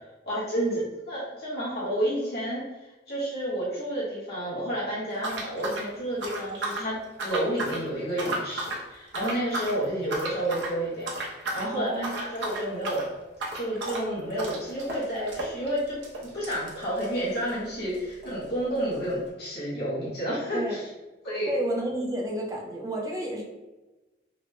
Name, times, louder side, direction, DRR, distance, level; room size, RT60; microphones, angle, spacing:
voice 1, 0.3-0.6 1.1-11.1 11.5-13.1 13.5-20.8 21.2-21.5, right 1 dB, 60° left, -8 dB, 1.0 m, -30 dB
sound 1, 5.2-6.9 7.2-7.8 8.1-8.8 9.1-9.8 10.1-10.8 11.1-11.7 12.0-17.6 17.9-18.0 18.2-18.3 19.0-19.1, right 2 dB, 85° right, 0.7 m, -34 dB
voice 2, 11.6-12.2 20.5-20.8 21.5-23.4, right 1 dB, 20° right, -1 dB, 0.4 m, -31 dB
3.0 x 2.2 x 3.0 m, 1.1 s
head